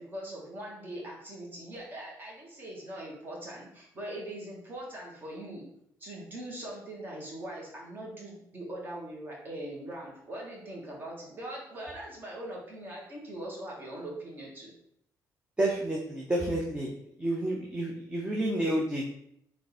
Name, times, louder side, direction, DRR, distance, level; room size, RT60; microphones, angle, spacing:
voice 1, 0.0-5.6 6.0-14.7, right 1 dB, 30° right, -2 dB, 1.4 m, -41 dB
voice 2, 15.6-16.9 17.2-19.1, right 1 dB, 15° right, -2 dB, 0.6 m, -29 dB
3.7 x 3.4 x 4.1 m, 0.72 s
cardioid pair, 150°, 7 cm